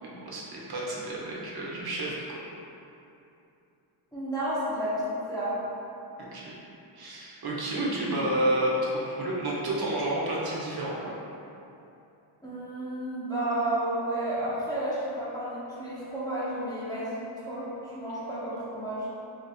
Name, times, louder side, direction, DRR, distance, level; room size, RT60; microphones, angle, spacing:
voice 1, 0.0-2.2 6.2-6.6 6.9-11.1, right 1 dB, 55° right, -5 dB, 0.6 m, -30 dB
voice 2, 4.1-5.5 12.4-17.1 17.4-17.7 17.9-19.0, right 1 dB, 10° left, -11 dB, 0.6 m, -31 dB
3.0 x 2.5 x 4.0 m, 2.8 s
wide cardioid pair, 175°, 46 cm